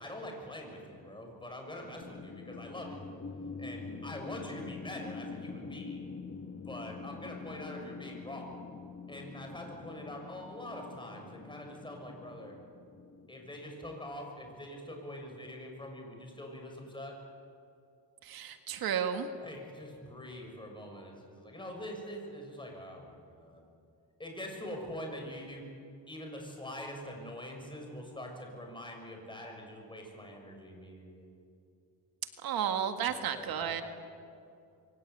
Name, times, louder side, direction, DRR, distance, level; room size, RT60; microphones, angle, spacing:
voice 1, 0.0-3.2 3.6-6.1 6.6-8.6 9.1-12.5 13.3-17.1 19.4-23.6 24.2-25.6 26.1-31.3 33.1-33.8, left 1 dB, 10° left, 2 dB, 6.5 m, -44 dB
sound 1, 2.0-14.2, left 4 dB, 35° left, 1.9 m, -45 dB
voice 2, 18.2-19.3 32.4-33.8, right 8 dB, 65° right, 7 dB, 1.8 m, -33 dB
27.5 x 23.0 x 8.3 m, 2.6 s
cardioid pair, 135°, 38 cm